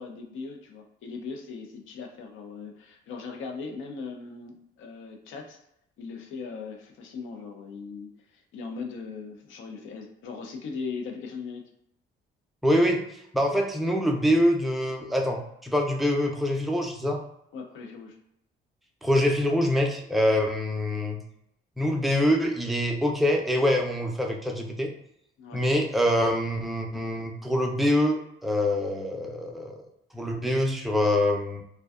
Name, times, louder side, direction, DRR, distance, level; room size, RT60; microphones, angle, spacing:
voice 1, 0.0-5.6 6.0-11.6 17.5-18.2 25.4-25.6, left 4 dB, 80° left, 3 dB, 0.6 m, -39 dB
voice 2, 12.6-13.0 13.3-17.2 19.0-21.2 21.8-24.9 25.5-29.8 30.1-31.6, left 1 dB, ahead, 1 dB, 0.4 m, -25 dB
2.5 x 2.2 x 2.3 m, 0.75 s
cardioid pair, 90°, 20 cm